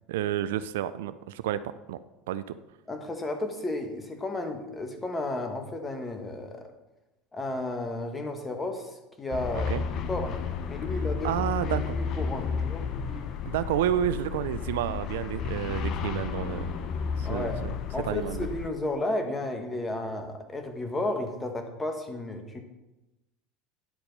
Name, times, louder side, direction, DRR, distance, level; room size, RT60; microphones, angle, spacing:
voice 1, 0.1-2.0 2.3-2.5 9.7-9.8 11.2-11.9 13.5-16.7 17.2-17.8 18.1-18.5, right 11 dB, 80° right, 14 dB, 0.3 m, -30 dB
voice 2, 2.9-6.7 7.3-9.7 10.1-10.4 10.7-11.3 11.6-12.9 17.2-17.6 17.9-22.6, left 2 dB, 20° left, 5 dB, 1.4 m, -33 dB
sound 1, 9.3-18.7, left 6 dB, 50° left, 0.7 m, -32 dB
sound 2, 10.9-11.2 11.6-11.9 12.3-12.6 13.1-13.4 14.8-15.2 15.7-16.0 16.5-16.8 17.4-17.7, right 2 dB, 15° right, 2.6 m, -48 dB
10.0 x 4.3 x 5.3 m, 1.0 s
hypercardioid pair, 85°, 0 cm